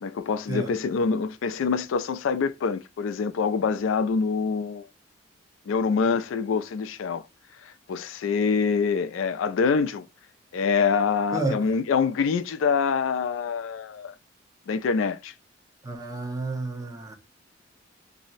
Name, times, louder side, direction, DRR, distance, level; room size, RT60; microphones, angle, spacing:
voice 1, 0.0-4.9 5.7-7.2 7.9-10.1 10.5-14.1 14.7-15.3, left 5 dB, 90° left, 0.4 m, -25 dB
voice 2, 11.3-11.6 15.8-17.2, right 2 dB, 15° right, 0.5 m, -30 dB
2.6 x 2.0 x 3.9 m
head